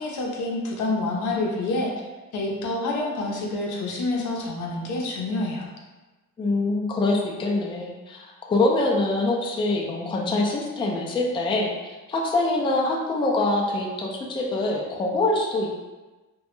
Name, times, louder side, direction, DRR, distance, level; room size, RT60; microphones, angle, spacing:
voice 1, 0.0-1.9 2.3-5.7, left 2 dB, 75° left, -1 dB, 0.6 m, -27 dB
voice 2, 6.4-11.7 12.1-15.7, left 2 dB, 15° left, -1 dB, 0.3 m, -24 dB
2.2 x 2.0 x 2.9 m, 1.2 s
cardioid pair, 90°, 30 cm